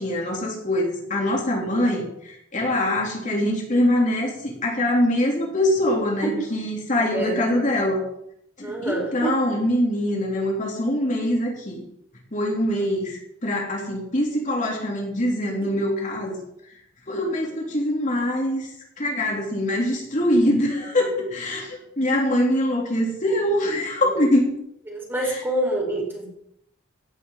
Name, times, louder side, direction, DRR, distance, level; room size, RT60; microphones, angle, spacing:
voice 1, 0.0-8.0 8.6-11.8 12.3-16.4 17.1-18.7 19.0-24.5 25.2-25.4, left 1 dB, 40° left, -1 dB, 3.6 m, -23 dB
voice 2, 7.0-7.5 8.6-9.3 24.9-26.3, right 1 dB, 10° right, -1 dB, 4.5 m, -27 dB
16.5 x 7.1 x 7.6 m, 0.75 s
head